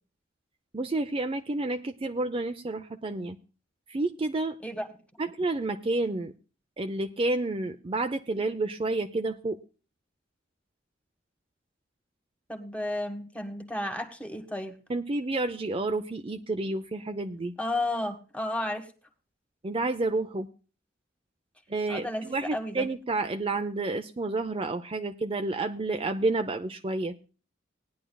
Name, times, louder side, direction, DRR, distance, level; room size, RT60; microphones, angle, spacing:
voice 1, 0.7-3.4 3.9-4.6 5.2-6.3 6.8-9.6 14.9-17.5 19.6-20.5 21.7-27.1, right 2 dB, 30° right, 6 dB, 0.6 m, -30 dB
voice 2, 12.5-14.8 17.6-18.9 21.9-22.9, left 1 dB, 5° left, 5 dB, 1.6 m, -32 dB
19.0 x 10.5 x 2.3 m, 0.36 s
head